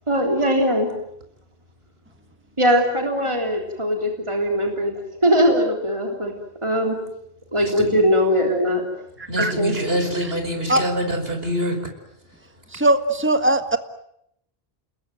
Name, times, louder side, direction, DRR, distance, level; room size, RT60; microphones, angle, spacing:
voice 1, 0.1-0.9 2.6-6.3 6.6-7.0 7.5-8.8 9.6-9.8, equal, 30° right, 2 dB, 3.6 m, -20 dB
voice 2, 7.6-7.9 9.3-11.8, equal, 70° right, 5 dB, 5.4 m, -25 dB
voice 3, 12.7-13.8, right 1 dB, 10° right, 9 dB, 1.6 m, -19 dB
29.0 x 21.5 x 9.2 m, 0.77 s
omnidirectional pair, 1.1 m